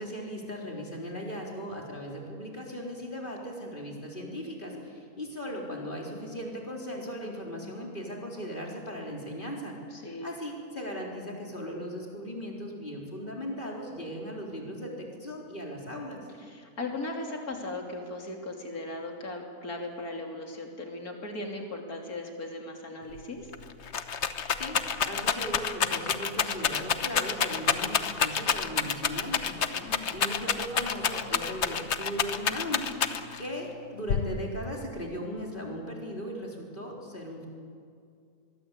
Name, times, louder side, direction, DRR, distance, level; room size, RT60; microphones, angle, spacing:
voice 1, 0.0-16.2 24.5-24.8 25.0-29.6 30.1-37.5, equal, 35° left, -1 dB, 4.2 m, -38 dB
voice 2, 9.9-10.3 16.5-23.5 29.6-30.1, left 2 dB, 70° left, 2 dB, 3.6 m, -38 dB
Rattle, 23.2-23.3 23.5-33.5 34.1-34.7, left 7 dB, 50° left, 1.2 m, -28 dB
23.0 x 22.5 x 8.3 m, 2.3 s
omnidirectional pair, 1.6 m